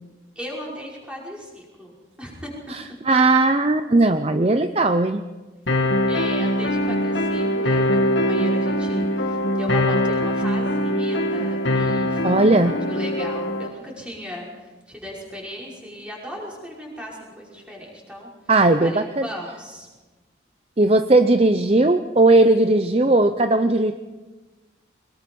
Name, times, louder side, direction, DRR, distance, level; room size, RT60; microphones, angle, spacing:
voice 1, 0.4-2.5 6.1-18.3 18.8-19.9, equal, 5° right, -4 dB, 5.5 m, -36 dB
voice 2, 2.7-5.2 12.2-12.7 18.5-19.3 20.8-23.9, right 2 dB, 30° right, 8 dB, 0.6 m, -17 dB
sound 1, 5.7-13.7, left 1 dB, 75° left, 2.3 m, -22 dB
23.0 x 21.5 x 5.4 m, 1.2 s
head